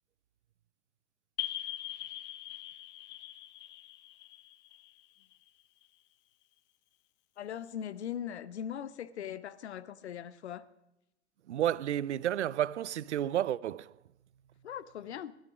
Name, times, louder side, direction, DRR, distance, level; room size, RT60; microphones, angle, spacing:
sound 1, 1.4-5.8, left 15 dB, 30° left, 0.7 m, -42 dB
voice 1, 7.4-10.7 14.6-15.3, left 9 dB, 70° left, 0.9 m, -40 dB
voice 2, 11.5-13.9, right 11 dB, 75° right, 0.5 m, -31 dB
16.0 x 11.5 x 5.0 m
figure-of-eight pair, 90°, 35 cm